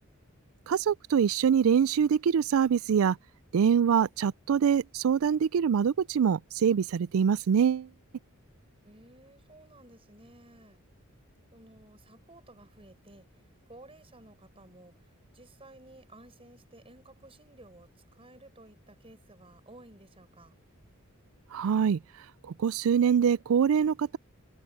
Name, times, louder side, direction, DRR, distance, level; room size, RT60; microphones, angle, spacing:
voice 1, 0.7-3.2 3.5-7.9 21.5-22.0 22.4-24.2, right 7 dB, 70° right, 0.4 m, -24 dB
voice 2, 8.8-10.8 11.5-13.3 13.7-15.1 15.3-20.5, right 2 dB, 25° right, 6.1 m, -54 dB
head